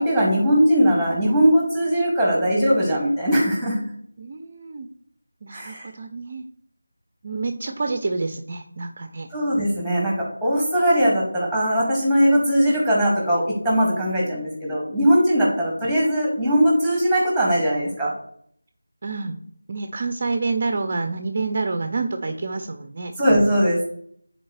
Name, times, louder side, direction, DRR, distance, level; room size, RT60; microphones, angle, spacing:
voice 1, 0.0-3.8 5.5-5.9 9.3-18.1 23.2-23.9, equal, 5° left, -3 dB, 1.8 m, -20 dB
voice 2, 4.2-4.9 5.4-6.5 7.2-9.3 19.0-19.4 19.7-23.1, right 3 dB, 35° right, 7 dB, 0.5 m, -28 dB
9.7 x 4.2 x 3.1 m, 0.66 s
figure-of-eight pair, 165°, 0 cm